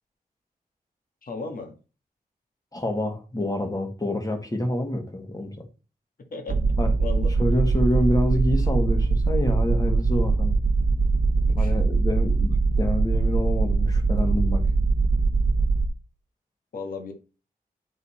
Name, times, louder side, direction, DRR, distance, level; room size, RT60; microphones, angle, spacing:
voice 1, 1.2-1.7 6.3-6.6 7.0-7.3 11.6-11.7 16.7-17.1, left 4 dB, 65° left, 1.6 m, -34 dB
voice 2, 2.7-5.5 6.8-6.9 7.4-10.6 11.6-14.6, left 1 dB, 25° left, 1.7 m, -27 dB
sound 1, 6.5-15.9, right 3 dB, 60° right, 0.8 m, -22 dB
10.0 x 4.0 x 4.2 m
wide cardioid pair, 120°, 16 cm